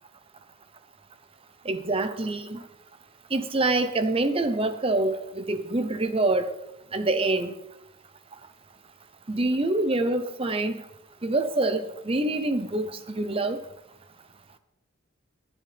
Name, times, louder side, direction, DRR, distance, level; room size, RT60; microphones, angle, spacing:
voice 1, 1.7-2.6 3.3-6.5 6.9-7.5 9.3-10.8 11.2-13.6, right 2 dB, 25° right, 0.6 m, -26 dB
14.0 x 9.3 x 3.4 m
head